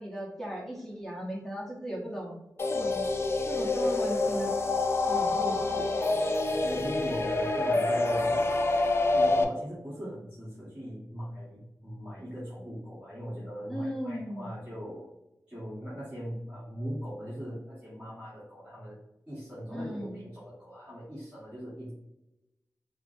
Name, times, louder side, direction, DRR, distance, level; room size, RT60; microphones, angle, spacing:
voice 1, 0.0-2.3 2.7-3.0 3.5-4.6 5.1-5.8 13.7-14.6 19.7-20.2, equal, 5° left, -4 dB, 0.9 m, -37 dB
sound 1, 2.6-9.4, left 2 dB, 40° left, 0.4 m, -27 dB
voice 2, 6.6-8.5 9.1-15.1 15.5-19.0 19.3-21.9, equal, 15° right, -10 dB, 1.5 m, -40 dB
4.9 x 2.0 x 2.6 m, 0.92 s
wide cardioid pair, 110°, 7 cm